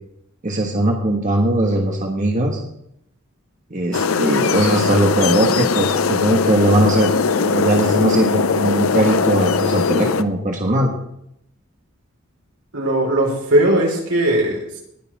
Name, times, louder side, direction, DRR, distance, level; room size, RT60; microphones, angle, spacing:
voice 1, 0.4-2.6 3.7-10.9, right 1 dB, 35° right, 0 dB, 1.5 m, -19 dB
sound 1, 3.9-10.2, left 5 dB, 70° left, 0.6 m, -20 dB
voice 2, 12.7-14.8, right 1 dB, 75° right, 0 dB, 4.5 m, -18 dB
20.0 x 6.9 x 4.9 m, 0.76 s
head